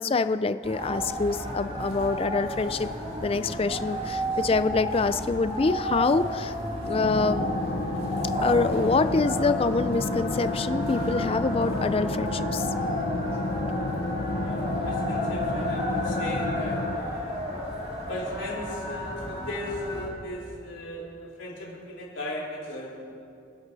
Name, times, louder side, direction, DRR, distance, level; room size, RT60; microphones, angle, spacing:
voice 1, 0.0-2.9 3.2-6.5 6.8-7.5 8.4-12.7, left 3 dB, 30° left, 12 dB, 0.4 m, -25 dB
sound 1, 0.6-20.1, equal, 30° right, 3.0 m, -32 dB
sound 2, 6.9-17.0, left 2 dB, 50° left, 0.7 m, -31 dB
voice 2, 14.3-17.4 18.1-23.0, left 1 dB, 70° left, -4 dB, 4.0 m, -37 dB
26.5 x 12.0 x 4.1 m, 2.6 s
head